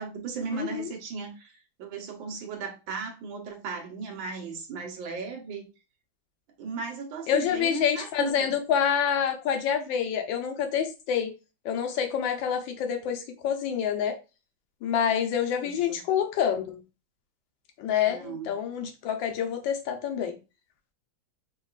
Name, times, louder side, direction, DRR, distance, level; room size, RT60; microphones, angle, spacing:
voice 1, 0.0-1.5 1.8-5.7 6.6-8.5 15.6-16.0 18.1-18.5, right 5 dB, 80° right, 1.7 m, -36 dB
voice 2, 0.5-0.9 7.3-11.3 11.6-14.2 14.8-16.8 17.8-20.3, left 8 dB, 75° left, 1.5 m, -27 dB
5.3 x 3.0 x 2.4 m
omnidirectional pair, 2.1 m